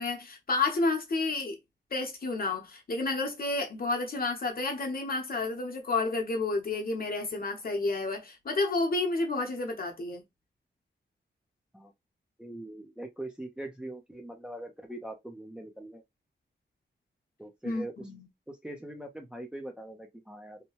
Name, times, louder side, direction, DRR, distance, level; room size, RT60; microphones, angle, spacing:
voice 1, 0.0-1.6 1.9-10.2 17.6-18.3, left 3 dB, 50° left, 0.9 m, -30 dB
voice 2, 12.4-16.0 17.4-17.9 18.5-20.6, right 1 dB, 5° right, 0.5 m, -42 dB
2.8 x 2.2 x 3.0 m
wide cardioid pair, 130°, 19 cm